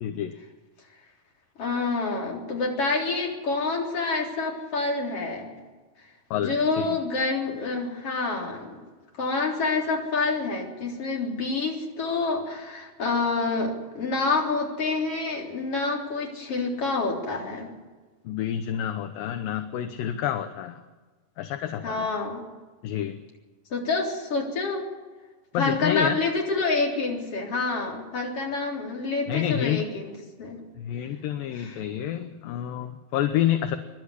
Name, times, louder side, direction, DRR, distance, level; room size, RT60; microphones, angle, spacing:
voice 1, 0.0-0.3 6.3-6.9 18.3-20.8 21.4-22.1 22.8-23.2 25.5-26.2 29.3-29.9 30.8-33.8, left 11 dB, 70° left, 8 dB, 2.4 m, -28 dB
voice 2, 1.6-5.5 6.3-8.8 9.2-17.7 21.8-22.4 23.7-24.9 25.5-30.1 30.4-30.6 31.5-31.8, left 3 dB, 35° left, -1 dB, 4.3 m, -27 dB
25.0 x 12.0 x 9.8 m, 1.3 s
omnidirectional pair, 4.7 m